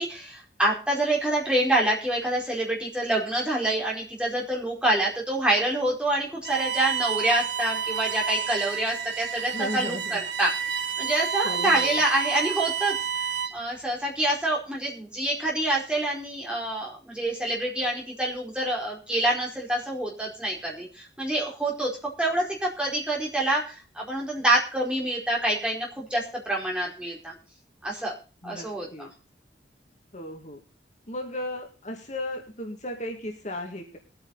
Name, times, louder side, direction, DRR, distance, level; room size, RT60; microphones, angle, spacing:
voice 1, 0.0-12.9 13.5-21.9 22.2-27.3 27.8-28.1 28.4-29.1, right 1 dB, 5° right, -3 dB, 4.6 m, -27 dB
Bowed string instrument, 6.4-13.7, right 7 dB, 85° right, 1.7 m, -30 dB
voice 2, 9.5-10.2 11.4-12.0 28.4-29.1 30.1-30.6 31.1-34.0, left 1 dB, 40° left, 2 dB, 2.3 m, -35 dB
21.0 x 9.0 x 4.1 m, 0.34 s
head